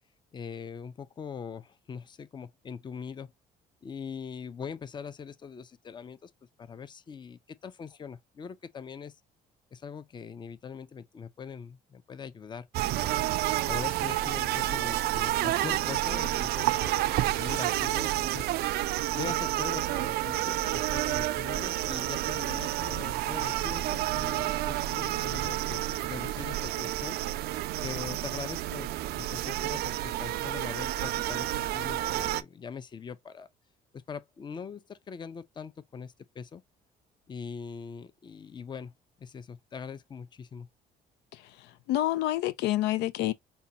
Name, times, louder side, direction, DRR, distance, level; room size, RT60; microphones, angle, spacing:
voice 1, 0.3-3.3 3.8-6.3 6.6-9.2 9.7-18.5 18.9-27.2 27.8-33.5 33.9-36.6 37.3-38.9 39.2-40.7, left 6 dB, 25° left, 0.5 m, -42 dB
sound 1, 12.7-32.4, right 15 dB, 70° right, 0.4 m, -30 dB
voice 2, 41.3-43.3, left 15 dB, 80° left, 0.4 m, -28 dB
5.4 x 2.3 x 2.8 m
cardioid pair, 110°, 17 cm